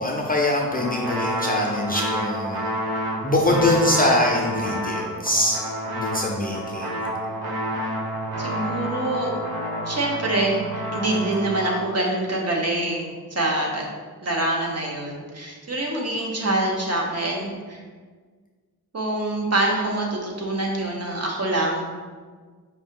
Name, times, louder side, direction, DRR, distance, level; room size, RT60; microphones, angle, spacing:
voice 1, 0.0-2.7 3.2-5.6 6.0-7.0, left 1 dB, 25° left, -2 dB, 0.4 m, -23 dB
sound 1, 0.7-11.8, equal, 85° right, 0.9 m, -29 dB
voice 2, 8.4-9.3 9.8-13.9 14.2-17.8 18.9-21.8, right 2 dB, 45° right, -1 dB, 0.8 m, -25 dB
4.9 x 2.7 x 3.6 m, 1.5 s
wide cardioid pair, 150°, 37 cm